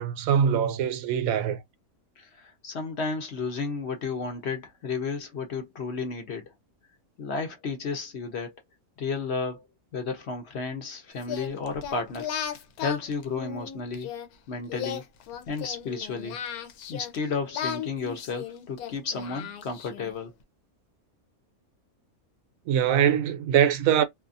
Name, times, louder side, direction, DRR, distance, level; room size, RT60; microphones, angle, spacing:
voice 1, 0.0-1.6 22.7-24.0, right 9 dB, 75° right, 1.0 m, -23 dB
voice 2, 2.2-6.5 7.2-8.6 9.0-9.6 9.9-12.3 12.8-14.1 14.5-15.0 15.5-16.4 16.9-20.3, left 4 dB, 55° left, 0.9 m, -32 dB
Singing, 11.2-14.3 14.7-17.2 17.5-20.1, left 9 dB, 85° left, 1.1 m, -36 dB
2.7 x 2.4 x 2.5 m
omnidirectional pair, 1.5 m